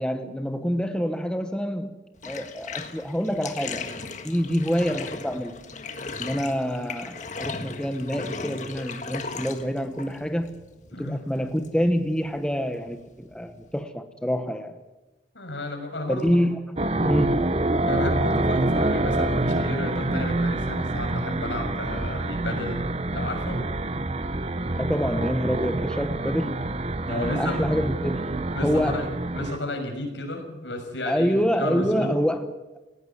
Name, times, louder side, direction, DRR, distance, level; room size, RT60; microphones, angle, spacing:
voice 1, 0.0-4.0 4.2-5.6 6.2-10.6 10.9-14.8 16.1-17.5 24.8-26.8 27.1-29.0 31.1-32.5, equal, 5° left, 7 dB, 1.2 m, -27 dB
Bathtub (filling or washing), 2.2-13.8, left 4 dB, 40° left, 1.7 m, -38 dB
voice 2, 15.3-16.4 17.9-23.6 27.0-27.6 28.5-29.1 29.3-32.1, left 1 dB, 85° left, 4 dB, 6.2 m, -32 dB
sound 1, 16.8-29.6, right 2 dB, 35° right, 0.9 m, -26 dB
19.0 x 17.5 x 9.5 m, 1.1 s
head